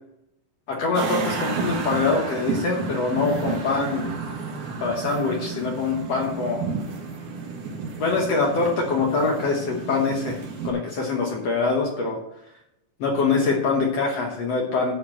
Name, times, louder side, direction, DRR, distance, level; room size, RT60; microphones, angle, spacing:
voice 1, 0.7-4.1 4.8-6.6 8.0-10.4 10.6-12.2 13.0-14.9, left 4 dB, 55° left, -1 dB, 2.0 m, -24 dB
sound 1, 0.9-10.7, right 4 dB, 65° right, 3.2 m, -31 dB
12.0 x 4.4 x 7.4 m, 0.83 s
omnidirectional pair, 4.0 m